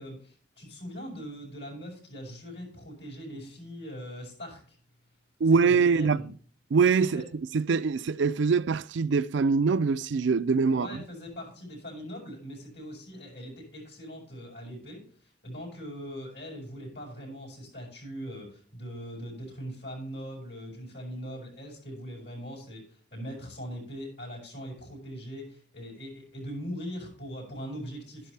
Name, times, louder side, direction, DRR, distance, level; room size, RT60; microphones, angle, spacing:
voice 1, 0.0-4.8 5.5-6.3 7.1-7.2 10.7-15.0 15.4-28.3, equal, 65° left, 6.0 m, -41 dB
voice 2, 5.4-6.2 6.7-10.9, right 5 dB, 75° right, 0.4 m, -24 dB
12.5 x 11.0 x 3.3 m
head